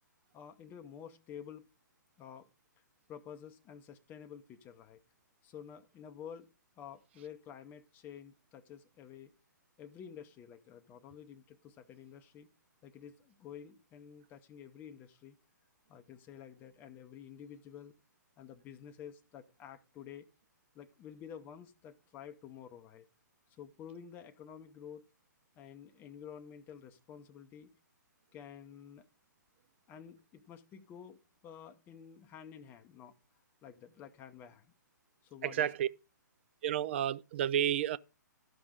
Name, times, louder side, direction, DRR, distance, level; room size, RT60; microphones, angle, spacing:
voice 1, 0.3-1.7 2.2-2.5 3.1-5.0 5.4-6.5 6.8-9.3 9.8-12.5 12.8-15.4 15.9-17.9 18.4-20.3 20.7-23.1 23.6-25.0 25.6-27.7 28.3-29.1 29.9-33.1 33.6-34.7 35.2-35.7, left 8 dB, 15° left, 0.6 m, -50 dB
voice 2, 35.4-35.9 36.6-38.0, right 10 dB, 35° right, 0.4 m, -31 dB
12.0 x 5.3 x 4.8 m
figure-of-eight pair, 125°, 10 cm